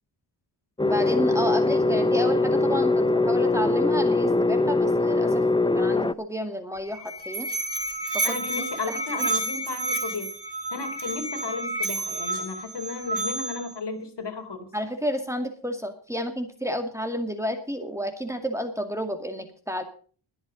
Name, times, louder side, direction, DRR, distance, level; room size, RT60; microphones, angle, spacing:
sound 1, 0.8-6.1, left 2 dB, 10° left, 0.6 m, -22 dB
voice 1, 0.8-5.4 5.7-7.5 8.3-9.3 14.7-19.8, equal, 5° right, 5 dB, 2.2 m, -31 dB
Musical instrument, 6.7-13.7, right 2 dB, 60° right, 4.5 m, -30 dB
voice 2, 8.2-10.3 10.7-14.7, left 4 dB, 60° left, 5 dB, 3.8 m, -34 dB
22.0 x 8.0 x 5.2 m, 0.42 s
wide cardioid pair, 100°, 46 cm